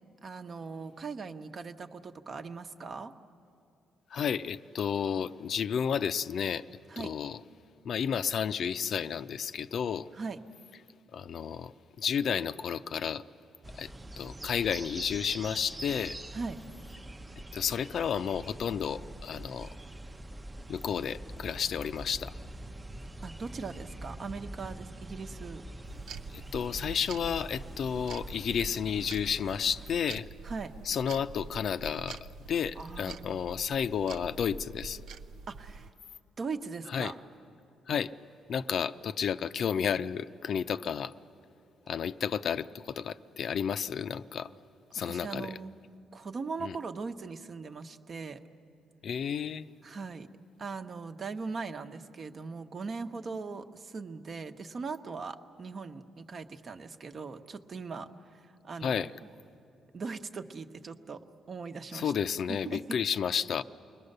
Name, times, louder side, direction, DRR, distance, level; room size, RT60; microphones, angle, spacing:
voice 1, 0.2-3.1 6.9-7.1 10.1-10.4 16.3-16.6 23.2-25.6 30.4-30.7 32.8-33.4 35.5-35.9 36.4-37.1 44.9-45.7 46.1-48.4 49.8-50.3 50.6-59.3 59.9-61.2 61.5-62.1 62.5-62.8, right 4 dB, 45° right, 8 dB, 1.0 m, -40 dB
voice 2, 4.1-6.7 7.0-7.4 7.8-10.1 11.1-13.2 13.7-13.9 14.2-16.2 17.5-19.7 20.7-22.3 26.3-30.3 30.9-32.2 32.5-35.0 36.9-37.1 37.9-38.1 38.5-41.1 41.9-44.5 44.9-45.6 46.6-46.8 49.0-49.7 58.8-59.1 61.9-63.6, left 7 dB, 60° left, 12 dB, 0.5 m, -32 dB
sound 1, 13.6-30.0, right 1 dB, 20° right, 0.7 m, -44 dB
sound 2, 25.8-35.9, right 4 dB, 80° right, 0.5 m, -45 dB
29.0 x 21.0 x 6.7 m, 2.6 s
cardioid pair, 90°, 0 cm